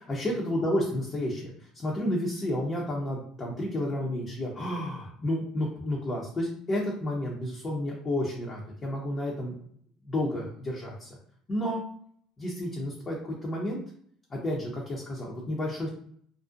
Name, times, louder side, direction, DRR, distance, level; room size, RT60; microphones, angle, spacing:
voice 1, 0.1-9.6 10.0-11.1 11.5-11.8 12.4-13.8 14.3-15.9, left 1 dB, 30° left, -4 dB, 0.6 m, -31 dB
2.5 x 2.1 x 2.4 m, 0.63 s
supercardioid pair, 95°, 0 cm